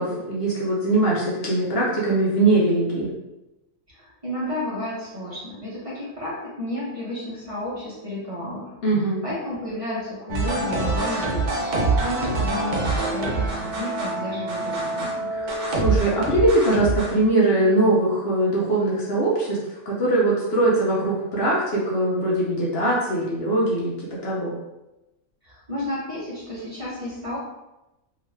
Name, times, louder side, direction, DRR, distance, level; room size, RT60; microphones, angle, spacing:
voice 1, 0.0-3.1 8.8-9.2 15.3-19.6 19.9-23.9 24.2-24.5, right 2 dB, 55° left, -5 dB, 0.8 m, -21 dB
voice 2, 3.9-8.7 9.2-15.3 25.4-27.4, left 1 dB, 30° right, -8 dB, 0.9 m, -32 dB
sound 1, 10.3-17.2, right 3 dB, 55° right, 0.5 m, -25 dB
2.8 x 2.4 x 3.2 m, 0.97 s
omnidirectional pair, 1.4 m